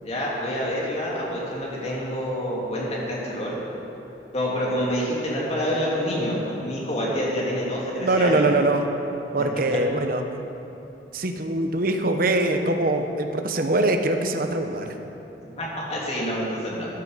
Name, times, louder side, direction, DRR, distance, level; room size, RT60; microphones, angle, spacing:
voice 1, 0.0-3.6 4.3-8.5 15.6-16.9, equal, 40° left, -5 dB, 2.8 m, -27 dB
voice 2, 8.0-8.9 9.3-10.2 10.6-10.7 11.1-14.9, right 2 dB, 55° right, 6 dB, 0.9 m, -23 dB
14.5 x 9.6 x 5.1 m, 3.0 s
head